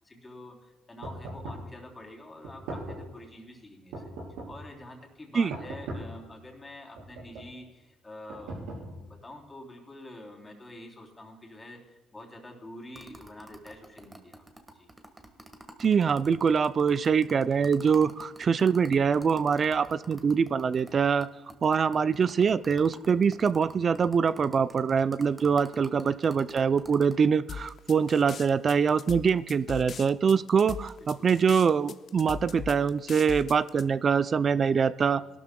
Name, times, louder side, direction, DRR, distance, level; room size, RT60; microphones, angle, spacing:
voice 1, 0.0-4.0 4.5-14.4 14.7-14.9 25.9-26.5 31.0-31.4 35.1-35.3, left 1 dB, 20° left, 1 dB, 3.3 m, -47 dB
sound 1, 1.0-1.7 2.4-3.2 3.9-4.7 5.5-6.2 7.0-7.6 8.3-9.2, right 2 dB, 90° right, 3.8 m, -39 dB
sound 2, 12.9-20.9 21.2-21.3 21.5-27.1, right 1 dB, 15° right, 1.5 m, -48 dB
voice 2, 15.8-21.3 21.6-35.2, right 6 dB, 40° right, 15 dB, 0.4 m, -24 dB
sound 3, 27.5-33.8, left 6 dB, 50° left, 0.5 m, -40 dB
19.5 x 12.5 x 2.3 m, 1.2 s
cardioid pair, 90°, 0 cm